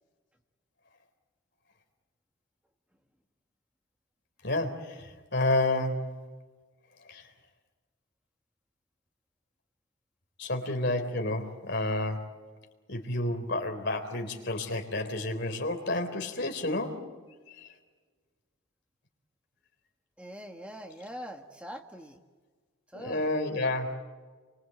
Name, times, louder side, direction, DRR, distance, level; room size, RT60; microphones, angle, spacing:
voice 1, 4.4-6.1 7.1-7.3 10.4-12.3 12.9-17.0 17.5-17.7 22.9-23.9, left 2 dB, 55° left, 5 dB, 3.9 m, -30 dB
voice 2, 20.2-22.2 22.9-23.4, equal, 5° right, 3 dB, 1.5 m, -43 dB
30.0 x 24.0 x 7.9 m, 1.4 s
head